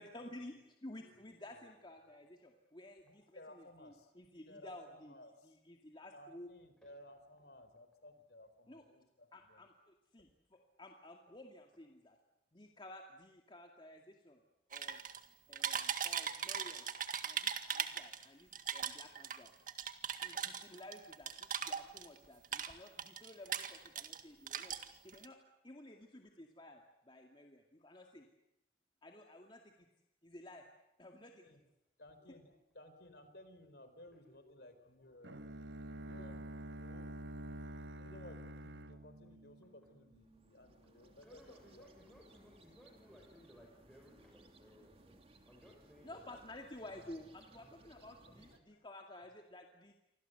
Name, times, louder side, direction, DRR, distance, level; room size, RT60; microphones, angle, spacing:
voice 1, 0.0-5.1 5.4-6.5 8.7-8.9 9.3-12.2 12.5-14.4 14.7-15.0 15.5-16.9 17.2-19.5 20.2-24.8 25.0-25.4 25.6-28.3 29.0-29.9 30.2-30.7 31.0-31.6 46.0-49.9, left 1 dB, 30° left, 2 dB, 2.3 m, -53 dB
voice 2, 0.9-1.6 2.0-2.3 3.0-4.1 4.5-5.5 6.1-9.6 31.4-31.6 32.0-35.4 36.0-36.5 36.7-37.1 38.0-42.2 47.9-48.0, left 1 dB, 65° left, 9 dB, 4.5 m, -58 dB
sound 1, 14.7-15.2 15.5-18.2 18.5-22.2 22.4-24.2 24.5-25.3, right 8 dB, 50° right, 1.9 m, -39 dB
voice 3, 15.0-15.4 20.3-20.7 24.0-24.4 37.0-37.1 41.0-46.4 46.8-47.3 47.6-47.9 48.2-48.5, equal, 5° left, -2 dB, 6.1 m, -63 dB
Bowed string instrument, 35.2-40.2, right 1 dB, 80° right, 1.6 m, -48 dB
sound 2, 40.1-48.6, right 2 dB, 35° right, 2.9 m, -64 dB
29.0 x 25.0 x 8.0 m, 0.84 s
head